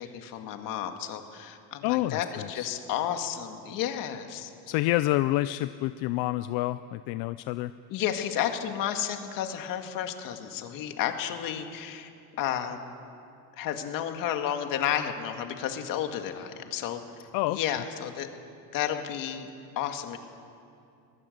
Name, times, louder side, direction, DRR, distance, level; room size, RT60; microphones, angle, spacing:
voice 1, 0.0-4.5 7.9-12.1 12.4-12.8 13.6-17.0 17.5-18.3 18.7-19.5 19.8-20.2, left 10 dB, 60° left, 6 dB, 2.1 m, -32 dB
voice 2, 1.8-2.7 4.7-7.7 17.3-17.6, left 17 dB, 85° left, 13 dB, 0.6 m, -28 dB
23.0 x 21.0 x 8.0 m, 2.6 s
cardioid pair, 175°, 38 cm